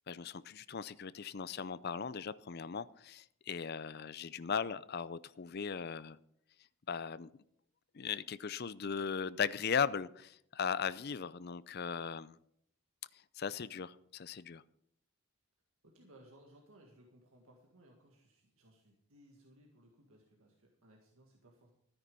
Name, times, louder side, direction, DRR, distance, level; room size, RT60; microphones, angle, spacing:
voice 1, 0.1-6.2 6.9-7.3 7.9-12.4 13.4-14.6, left 6 dB, 45° left, 0.5 m, -38 dB
voice 2, 15.8-21.7, right 1 dB, 75° right, 1.9 m, -62 dB
13.0 x 9.8 x 5.4 m
head